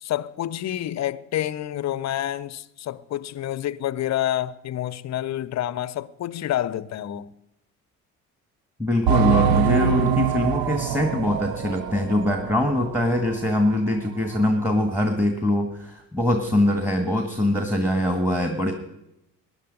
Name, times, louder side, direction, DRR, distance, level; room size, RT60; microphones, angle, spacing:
voice 1, 0.0-7.3, left 12 dB, 35° left, 0.7 m, -28 dB
voice 2, 8.8-18.7, left 1 dB, 5° right, 1.7 m, -23 dB
sound 1, 9.1-13.3 13.7-13.8 14.3-14.4, right 9 dB, 55° right, 0.8 m, -24 dB
19.5 x 10.5 x 5.3 m
figure-of-eight pair, 55°, 46 cm